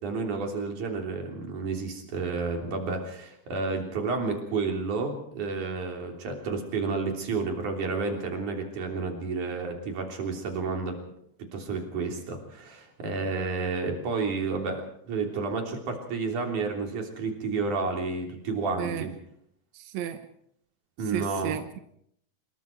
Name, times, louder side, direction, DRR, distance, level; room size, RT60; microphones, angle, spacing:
voice 1, 0.0-11.0 11.5-19.1 21.0-21.6, right 4 dB, 85° right, 2 dB, 4.8 m, -31 dB
voice 2, 18.8-19.1 19.7-20.2 21.1-21.8, right 10 dB, 70° right, 8 dB, 2.3 m, -33 dB
26.0 x 22.0 x 4.6 m, 0.71 s
omnidirectional pair, 3.4 m